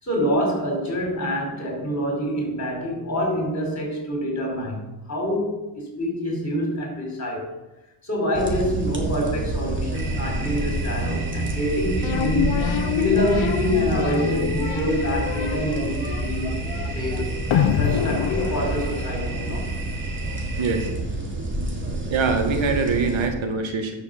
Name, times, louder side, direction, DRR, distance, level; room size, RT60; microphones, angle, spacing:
voice 1, 0.0-7.5 8.0-12.5 13.0-16.7 16.9-19.8, equal, 35° left, 1 dB, 4.9 m, -26 dB
sound 1, 8.3-23.3, right 1 dB, 25° right, 2.8 m, -28 dB
sound 2, 9.9-20.9, right 3 dB, 45° right, 2.3 m, -36 dB
sound 3, 12.0-19.5, left 9 dB, 75° left, 0.9 m, -26 dB
voice 2, 20.6-20.9 22.1-23.9, right 4 dB, 75° right, 4 dB, 2.0 m, -23 dB
10.5 x 6.6 x 7.3 m, 1.0 s
cardioid pair, 105°, 47 cm